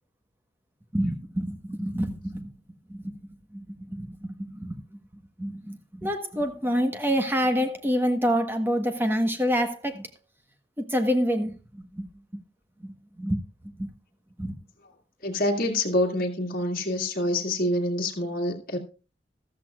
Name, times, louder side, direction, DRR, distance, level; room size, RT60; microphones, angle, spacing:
voice 1, 0.9-2.5 2.9-3.2 3.5-4.7 5.4-10.1 10.8-12.1 12.3-12.4 12.8-13.4 13.8-13.9 14.4-14.5, equal, 10° right, 1.2 m, -27 dB
voice 2, 15.2-18.8, left 1 dB, 50° left, 2.1 m, -26 dB
14.5 x 13.0 x 2.4 m
head